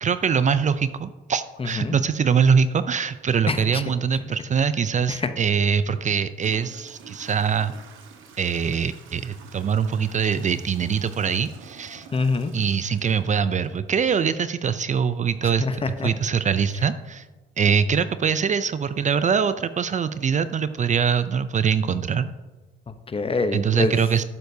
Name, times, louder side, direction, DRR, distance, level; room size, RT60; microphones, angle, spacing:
voice 1, 0.0-7.7 8.4-12.1 12.5-15.6 16.0-17.2 17.6-22.3 23.5-24.2, right 6 dB, 40° right, 13 dB, 0.4 m, -23 dB
voice 2, 1.6-2.0 3.5-3.8 5.1-5.3 12.1-12.5 15.4-16.1 22.9-24.0, left 3 dB, 30° left, 9 dB, 0.8 m, -26 dB
Toilet flush / Trickle dribble, 6.3-14.1, right 6 dB, 85° right, 1.3 m, -48 dB
11.5 x 9.1 x 2.7 m, 1.2 s
cardioid pair, 90°, 20 cm